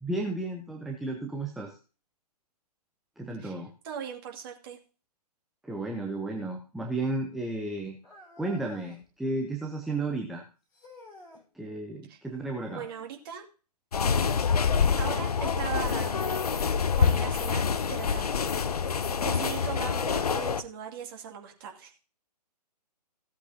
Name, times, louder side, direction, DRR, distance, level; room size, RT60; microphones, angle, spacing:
voice 1, 0.0-1.8 3.2-3.7 5.6-8.0 8.4-10.4 11.5-12.8, right 2 dB, ahead, 2 dB, 0.8 m, -33 dB
voice 2, 3.8-4.8 12.1-12.2 12.7-13.4 15.0-16.4 17.0-17.6 17.9-18.3 19.2-21.9, right 8 dB, 35° right, 2 dB, 2.4 m, -39 dB
sound 1, 8.0-9.1 10.7-11.4 12.5-13.2 15.2-15.3 16.2-16.3 17.2-17.3, left 1 dB, 20° left, 4.5 m, -51 dB
sound 2, 13.9-20.6, left 6 dB, 65° left, 0.8 m, -26 dB
16.0 x 8.1 x 2.8 m, 0.35 s
figure-of-eight pair, 130°, 21 cm